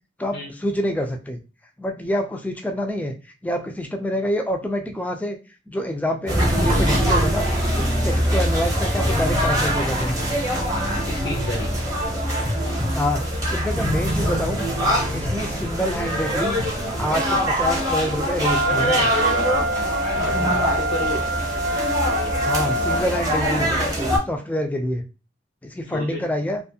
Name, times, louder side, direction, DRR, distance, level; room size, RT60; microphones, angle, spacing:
voice 1, 0.2-1.4 1.8-3.2 3.4-5.4 5.7-7.5 7.8-10.2 12.9-14.7 15.1-16.6 17.0-19.1 22.4-23.7 24.1-25.1 25.6-26.6, equal, 10° left, 3 dB, 0.3 m, -26 dB
sound 1, 6.3-24.2, equal, 20° right, 0.8 m, -23 dB
voice 2, 11.1-11.7 20.2-21.2 22.8-23.1 25.9-26.2, left 2 dB, 85° left, -1 dB, 0.6 m, -30 dB
Wind instrument woodwind instrument, 18.4-23.1, right 1 dB, 90° right, 0.3 m, -25 dB
2.4 x 2.3 x 2.7 m, 0.31 s
head